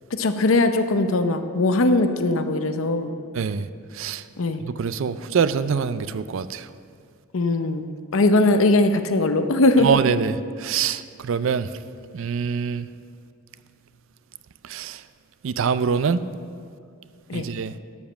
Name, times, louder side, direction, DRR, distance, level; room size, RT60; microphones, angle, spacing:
voice 1, 0.1-3.1 4.4-4.6 7.3-7.9 8.1-9.9 17.3-17.5, left 2 dB, 70° left, 9 dB, 0.7 m, -20 dB
voice 2, 3.4-3.7 3.9-4.2 4.6-6.7 9.8-11.7 12.1-12.9 14.7-15.0 15.4-16.2 17.3-17.7, right 6 dB, 65° right, 14 dB, 0.4 m, -24 dB
12.0 x 5.2 x 7.2 m, 2.2 s
head